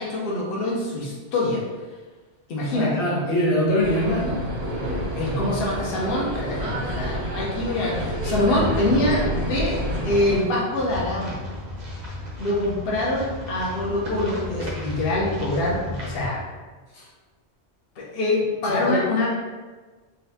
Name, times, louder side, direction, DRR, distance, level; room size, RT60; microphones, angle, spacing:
voice 1, 0.0-1.6 2.5-3.0 3.3-3.4 5.1-11.4 12.4-16.4 18.0-19.3, left 1 dB, 60° left, -4 dB, 0.8 m, -25 dB
voice 2, 2.7-4.4 16.9-17.0 18.6-19.0, left 1 dB, 85° left, -5 dB, 1.2 m, -23 dB
sound 1, 3.8-10.4, equal, 75° right, 1.1 m, -28 dB
sound 2, 10.7-16.3, left 2 dB, 45° right, 0.7 m, -34 dB
4.0 x 2.2 x 2.6 m, 1.3 s
omnidirectional pair, 1.1 m